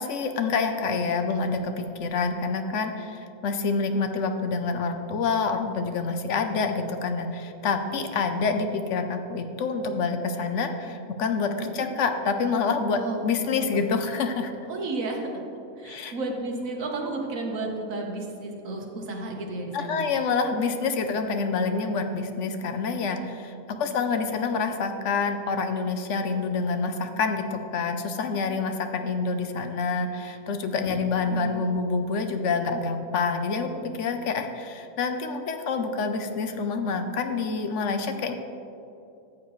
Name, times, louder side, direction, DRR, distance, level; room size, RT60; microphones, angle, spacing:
voice 1, 0.0-14.5 15.8-16.1 19.7-38.3, left 4 dB, 60° left, 7 dB, 0.9 m, -27 dB
voice 2, 13.5-13.8 14.7-15.3 15.8-20.1 23.7-24.2 30.9-31.7, right 2 dB, 65° right, 0 dB, 1.6 m, -33 dB
14.0 x 7.5 x 3.1 m, 2.8 s
omnidirectional pair, 1.5 m